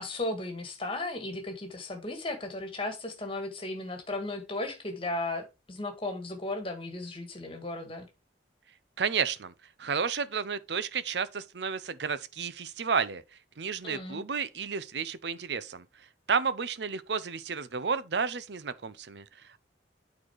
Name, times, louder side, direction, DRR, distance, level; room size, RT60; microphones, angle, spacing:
voice 1, 0.0-8.1 13.8-14.3, left 2 dB, 30° left, 1.8 m, -35 dB
voice 2, 9.0-9.5 9.8-13.2 13.6-15.9 16.3-19.6, right 6 dB, 70° right, 0.7 m, -31 dB
8.8 x 4.2 x 4.7 m
head